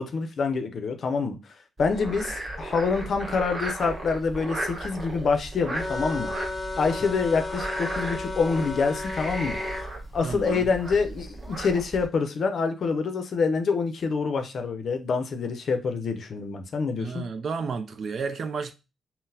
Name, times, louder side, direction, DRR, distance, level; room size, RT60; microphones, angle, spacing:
voice 1, 0.0-1.4 1.8-6.3 6.8-9.6 10.1-17.2, left 4 dB, 60° left, 0.5 m, -26 dB
Frog, 1.8-12.1, right 1 dB, 30° right, 1.1 m, -35 dB
sound 1, 5.8-9.9, left 3 dB, 20° left, 0.7 m, -34 dB
voice 2, 10.2-10.7 17.0-18.7, right 5 dB, 60° right, 0.3 m, -32 dB
3.8 x 2.0 x 2.6 m
cardioid pair, 70°, 0 cm